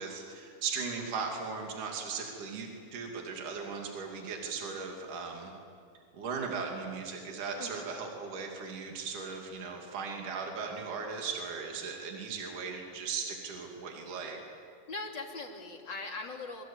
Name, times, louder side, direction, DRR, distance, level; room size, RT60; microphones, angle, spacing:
voice 1, 0.0-5.5 6.1-14.4, right 5 dB, 65° right, 1 dB, 4.1 m, -38 dB
voice 2, 7.6-7.9 14.9-16.6, left 3 dB, 35° left, 1 dB, 3.1 m, -40 dB
26.5 x 24.0 x 8.8 m, 2.3 s
omnidirectional pair, 4.0 m